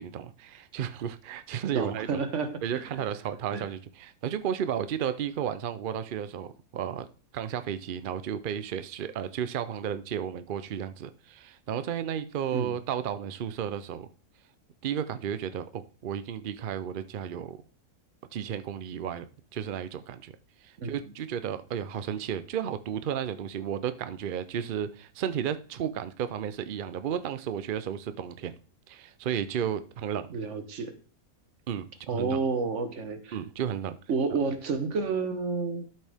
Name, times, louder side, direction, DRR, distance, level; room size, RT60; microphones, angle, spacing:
voice 1, 0.0-2.2 2.6-7.1 7.3-14.1 14.8-17.6 18.3-20.3 20.6-28.5 28.9-30.3 31.7-32.4 33.3-34.0, right 9 dB, 85° right, 0.4 m, -33 dB
voice 2, 1.7-2.8 3.5-3.7 12.5-12.7 20.8-20.9 30.3-30.9 32.1-33.4 34.1-35.9, right 4 dB, 55° right, 1.2 m, -30 dB
12.5 x 5.4 x 3.5 m
omnidirectional pair, 1.6 m